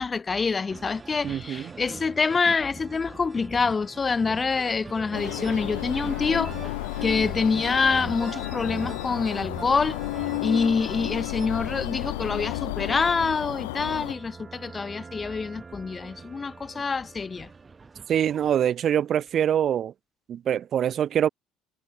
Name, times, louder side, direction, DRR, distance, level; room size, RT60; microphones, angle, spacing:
voice 1, 0.0-6.5 7.0-10.0 10.4-17.5, left 4 dB, 30° left, 0.5 m, -26 dB
Like Day and Night, 0.7-18.5, right 4 dB, 25° right, 3.7 m, -43 dB
voice 2, 1.2-1.7 18.1-19.9 20.3-21.3, right 9 dB, 50° right, 0.3 m, -24 dB
sound 1, 5.1-14.1, left 21 dB, 90° left, 0.5 m, -32 dB
supercardioid pair, 80°, 0 cm